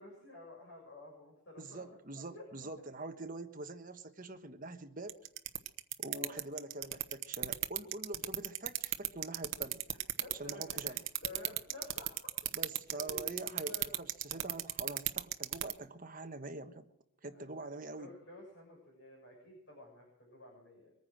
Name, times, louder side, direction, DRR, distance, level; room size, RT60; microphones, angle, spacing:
voice 1, 0.0-1.8 2.3-2.7 6.1-6.4 10.2-12.1 12.9-13.3 13.6-13.9 17.3-20.9, left 2 dB, 55° left, -2 dB, 6.9 m, -52 dB
voice 2, 1.6-5.2 6.0-9.8 10.4-11.0 12.5-16.9 17.2-18.1, right 2 dB, 40° right, 7 dB, 1.3 m, -45 dB
sound 1, 5.1-15.7, right 14 dB, 65° right, 1.1 m, -33 dB
23.5 x 9.8 x 6.3 m, 0.79 s
head